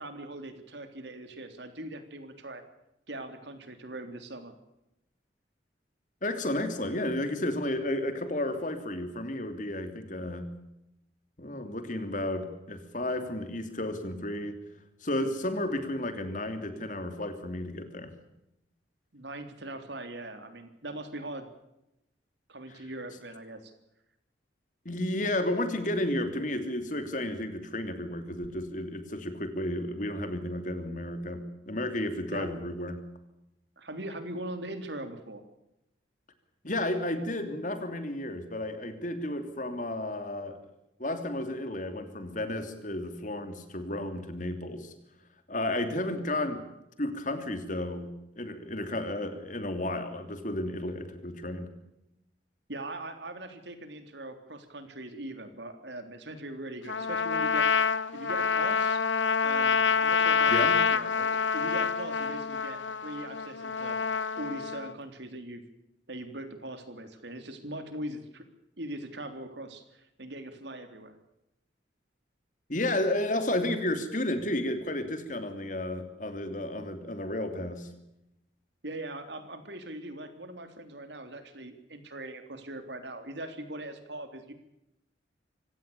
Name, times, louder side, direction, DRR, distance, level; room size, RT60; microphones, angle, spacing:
voice 1, 0.0-2.6 3.1-4.5 19.1-21.5 22.5-23.7 32.3-32.6 33.8-35.4 52.7-57.7 58.1-59.0 59.4-65.6 66.1-68.4 68.8-71.1 78.8-84.5, right 1 dB, 70° right, 8 dB, 3.6 m, -41 dB
voice 2, 6.2-10.5 11.4-14.6 15.0-18.1 24.8-33.0 36.6-40.6 41.0-44.9 45.5-46.6 47.0-51.7 60.5-60.8 72.7-77.9, left 1 dB, 45° left, 8 dB, 3.0 m, -32 dB
Trumpet, 56.9-64.9, left 6 dB, 80° left, 1.0 m, -27 dB
25.5 x 17.0 x 7.0 m, 0.86 s
head